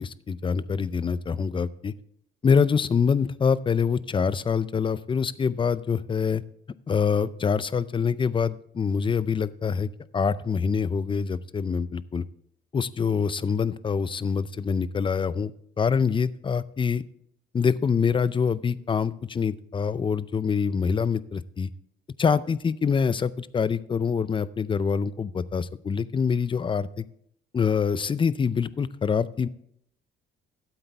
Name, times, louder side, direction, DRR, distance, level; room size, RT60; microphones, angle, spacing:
voice 1, 0.0-1.9 2.4-6.4 6.9-12.2 12.7-15.5 15.8-17.0 17.5-21.7 22.2-27.0 27.5-29.5, left 6 dB, 25° left, 17 dB, 0.5 m, -25 dB
13.0 x 7.9 x 3.4 m, 0.69 s
cardioid pair, 105°, 21 cm